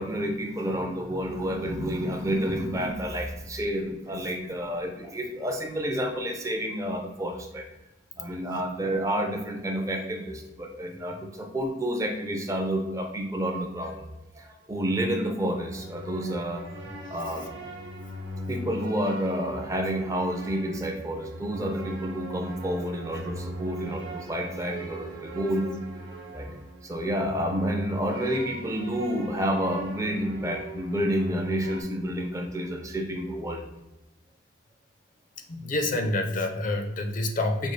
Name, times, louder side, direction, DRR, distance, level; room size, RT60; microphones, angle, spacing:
voice 1, 0.0-7.7 8.2-14.1 14.3-16.6 17.1-17.6 18.5-25.7 26.3-26.5 26.8-33.6, equal, 15° right, 3 dB, 0.4 m, -29 dB
sound 1, 15.4-31.8, equal, 80° right, 0.9 m, -39 dB
voice 2, 35.5-37.7, left 2 dB, 45° left, 5 dB, 0.4 m, -27 dB
5.3 x 2.3 x 3.1 m, 1.0 s
head